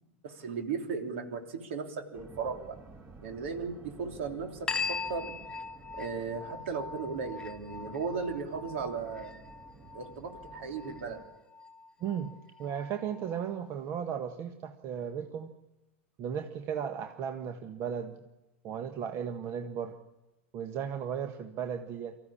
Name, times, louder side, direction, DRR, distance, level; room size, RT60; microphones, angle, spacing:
voice 1, 0.2-2.8 3.2-5.3 6.0-9.3 9.9-11.2, right 5 dB, 70° right, 4 dB, 3.4 m, -36 dB
sound 1, 2.1-11.3, right 3 dB, 25° right, 2.4 m, -53 dB
sound 2, 4.7-13.7, left 5 dB, 15° left, 1.3 m, -41 dB
voice 2, 12.0-12.3 12.6-15.5 16.2-18.1 18.6-20.0 20.5-22.2, right 8 dB, 40° right, 6 dB, 1.5 m, -35 dB
25.0 x 15.0 x 8.7 m, 0.98 s
hypercardioid pair, 95°, 7 cm